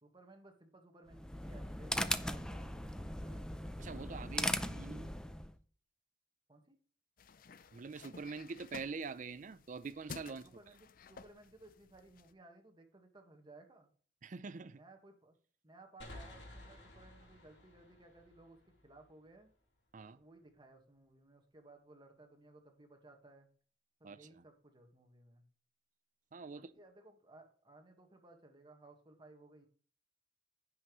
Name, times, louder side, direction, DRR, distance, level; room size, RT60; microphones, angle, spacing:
voice 1, 0.0-3.4 4.0-4.9 6.5-6.8 10.3-13.9 14.7-15.3 15.6-18.6 18.8-19.5 20.1-23.5 24.0-25.4 26.4-29.7, right 2 dB, 25° right, 1.5 m, -59 dB
sound 1, 1.1-5.5, left 1 dB, 5° left, 0.5 m, -39 dB
voice 2, 3.8-5.1 7.7-10.4 14.2-14.8 19.9-20.2 24.0-24.4 26.3-26.7, right 4 dB, 45° right, 0.5 m, -45 dB
sound 2, 7.2-12.3, left 5 dB, 55° left, 0.5 m, -54 dB
sound 3, 16.0-19.5, left 1 dB, 85° left, 3.1 m, -54 dB
15.5 x 5.6 x 3.1 m
head